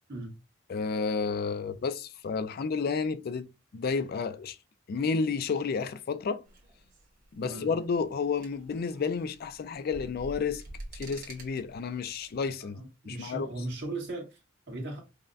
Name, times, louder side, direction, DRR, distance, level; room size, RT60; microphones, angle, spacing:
voice 1, 0.7-4.6 4.9-6.4 7.3-10.6 10.9-12.8 13.1-13.5, left 5 dB, 50° left, 0.4 m, -31 dB
sound 1, 6.5-12.5, right 2 dB, 45° right, 1.4 m, -48 dB
voice 2, 12.6-15.0, right 2 dB, 65° right, 1.6 m, -38 dB
5.4 x 2.1 x 2.5 m
head